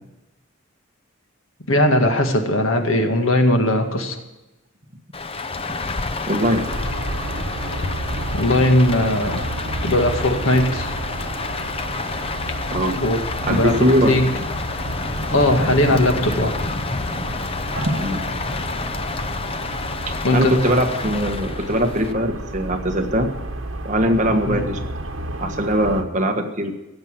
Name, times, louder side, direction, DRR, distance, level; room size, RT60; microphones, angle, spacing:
voice 1, 1.7-4.2 8.3-9.6 9.8-11.0 12.9-13.2 13.5-14.3 15.3-16.5 20.2-20.6 24.5-24.6, left 1 dB, 80° left, 4 dB, 2.0 m, -19 dB
Rain, 5.1-22.1, left 3 dB, 30° left, 0.7 m, -29 dB
voice 2, 6.3-6.6 12.7-13.0 13.4-14.4 17.8-18.2 20.3-23.3 23.8-24.8 25.4-26.7, equal, 35° right, 4 dB, 1.5 m, -21 dB
sound 1, 6.4-26.0, right 1 dB, 70° right, 1.6 m, -31 dB
16.5 x 7.6 x 7.4 m, 1.0 s
head